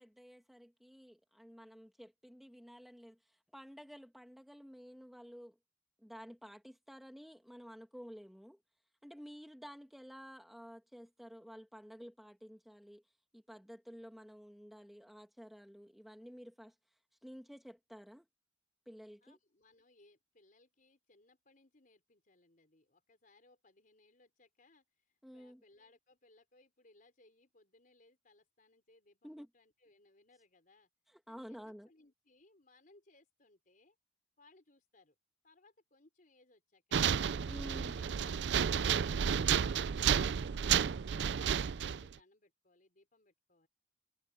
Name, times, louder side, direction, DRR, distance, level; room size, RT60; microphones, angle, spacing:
voice 1, 0.0-5.5 6.0-8.6 9.0-13.0 13.3-16.7 17.2-18.3 18.9-19.4 25.2-25.6 29.2-29.5 31.1-31.9 37.5-37.9, equal, ahead, 1.8 m, -52 dB
voice 2, 19.2-30.9 31.3-34.0 34.4-35.1 35.4-37.1 37.5-43.7, left 2 dB, 50° left, 4.6 m, -67 dB
sound 1, 36.9-42.1, right 7 dB, 75° right, 0.4 m, -31 dB
head